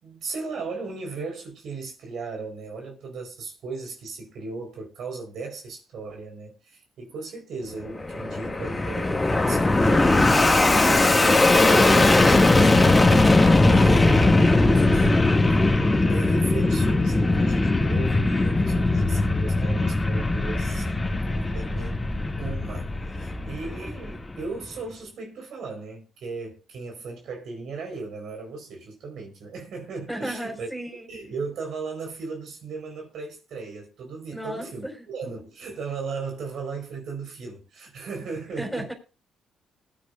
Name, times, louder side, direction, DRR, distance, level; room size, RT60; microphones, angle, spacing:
voice 1, 0.0-9.2 9.5-11.6 12.0-13.1 13.7-14.4 14.7-15.3 16.1-22.1 22.4-30.7 31.1-38.9, right 4 dB, 70° right, 4.3 m, -36 dB
Fixed-wing aircraft airplane, 7.9-24.5, left 2 dB, 20° left, 2.0 m, -20 dB
voice 2, 30.1-31.1 34.3-35.1 38.6-38.9, right 1 dB, 5° right, 5.0 m, -34 dB
20.0 x 9.7 x 2.5 m
cardioid pair, 90°, 0 cm